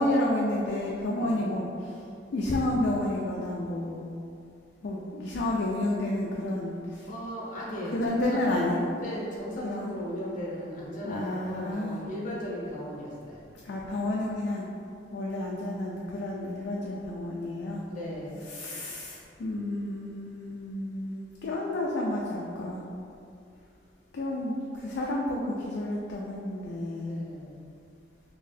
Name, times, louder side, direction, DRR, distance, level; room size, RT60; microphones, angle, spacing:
voice 1, 0.0-2.0 2.3-4.1 4.8-7.1 7.9-8.8 9.6-9.9 11.0-12.0 13.6-17.8 18.5-22.8 24.1-27.2, left 1 dB, 65° left, -3 dB, 0.4 m, -30 dB
voice 2, 7.1-8.5 8.9-13.4 17.9-18.5 26.9-27.6, equal, 45° left, -5 dB, 0.8 m, -37 dB
3.9 x 2.7 x 2.6 m, 2.5 s
head